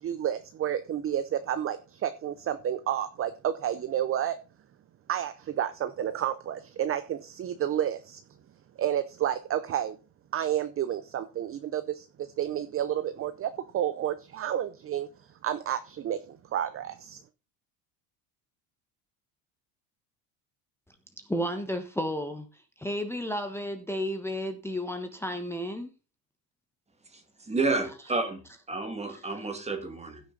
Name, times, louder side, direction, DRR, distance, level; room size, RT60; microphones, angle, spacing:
voice 1, 0.0-4.4 5.1-8.2 8.8-10.0 10.3-17.2, right 10 dB, 30° right, 12 dB, 0.6 m, -30 dB
voice 2, 21.3-22.5 22.8-25.9, equal, 5° left, 5 dB, 1.2 m, -32 dB
voice 3, 27.4-28.4 28.7-30.2, right 3 dB, 15° right, 7 dB, 2.0 m, -30 dB
15.5 x 6.3 x 3.9 m, 0.31 s
cardioid pair, 135°, 47 cm